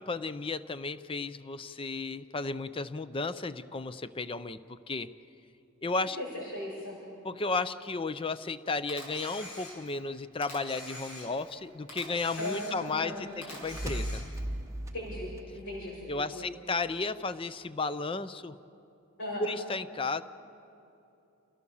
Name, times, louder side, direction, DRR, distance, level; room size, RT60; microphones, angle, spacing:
voice 1, 0.0-5.1 5.8-6.2 7.2-14.2 16.1-18.5 19.4-20.2, left 3 dB, 25° left, 14 dB, 0.5 m, -34 dB
voice 2, 6.2-7.0 12.4-13.4 14.9-16.5 19.2-19.5, left 1 dB, 60° left, -7 dB, 5.7 m, -38 dB
Camera, 8.9-10.0 10.4-11.6 11.9-13.0 13.4-14.5, left 1 dB, 90° left, 6.2 m, -45 dB
sound 1, 13.2-16.6, right 1 dB, 15° right, 0.9 m, -38 dB
28.5 x 17.0 x 7.1 m, 2.9 s
head